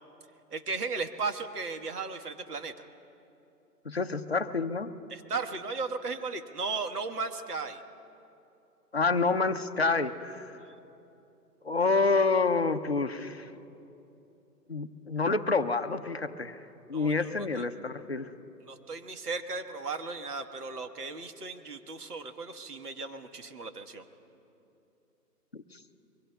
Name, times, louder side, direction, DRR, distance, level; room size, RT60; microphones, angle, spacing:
voice 1, 0.5-2.9 5.1-7.8 10.6-10.7 16.9-17.6 18.7-24.0, right 4 dB, 65° right, 7 dB, 1.5 m, -36 dB
voice 2, 3.9-4.9 8.9-10.5 11.6-13.5 14.7-16.6 16.9-18.3 25.5-25.6, left 3 dB, 40° left, 8 dB, 0.5 m, -28 dB
26.5 x 24.0 x 2.3 m, 2.8 s
hypercardioid pair, 175°, 49 cm